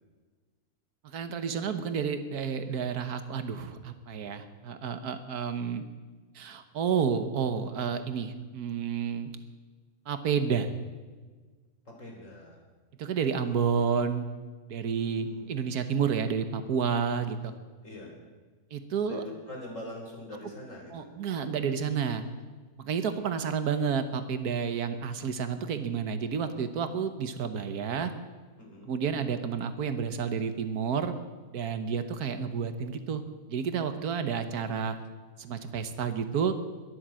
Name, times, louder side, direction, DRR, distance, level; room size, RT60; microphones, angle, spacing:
voice 1, 1.0-5.8 6.3-9.3 10.1-10.7 13.0-14.3 14.7-17.5 18.7-19.2 20.9-22.2 22.8-28.1 28.9-31.1 31.5-33.2 33.5-35.0 35.4-36.5, right 6 dB, 85° right, 9 dB, 1.6 m, -30 dB
voice 2, 11.9-12.6 15.0-15.4 17.8-18.1 19.0-21.1 28.6-28.9, left 1 dB, 55° left, -1 dB, 4.4 m, -43 dB
22.0 x 7.9 x 7.6 m, 1.4 s
omnidirectional pair, 1.6 m